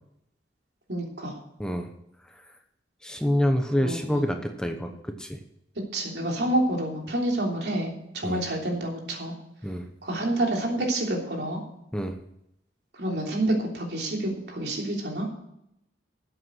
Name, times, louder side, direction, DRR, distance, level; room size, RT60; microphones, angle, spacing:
voice 1, 0.9-1.4 3.8-4.3 5.9-9.3 10.0-11.6 13.0-15.3, right 1 dB, 70° right, 0 dB, 3.2 m, -28 dB
voice 2, 3.0-5.4 8.2-8.4 9.6-9.8 11.9-12.1, equal, 5° left, 5 dB, 0.8 m, -27 dB
13.5 x 7.9 x 6.3 m, 0.79 s
head